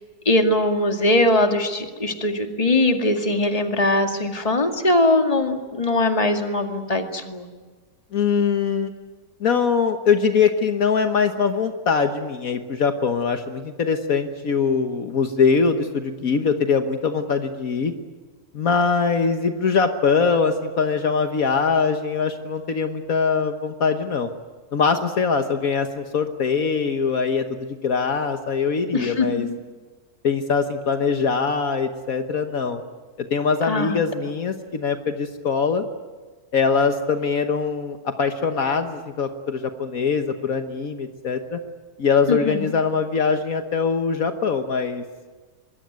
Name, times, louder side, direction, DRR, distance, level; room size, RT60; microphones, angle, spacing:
voice 1, 0.3-7.5 28.9-29.6 33.7-34.0 42.3-42.7, left 1 dB, 25° left, 4 dB, 2.2 m, -21 dB
voice 2, 8.1-8.9 9.4-17.9 18.5-24.3 24.7-29.5 30.2-32.8 33.3-35.8 36.5-41.6 42.0-45.0, left 5 dB, 65° left, 6 dB, 1.6 m, -22 dB
25.0 x 21.5 x 9.3 m, 1.4 s
omnidirectional pair, 1.6 m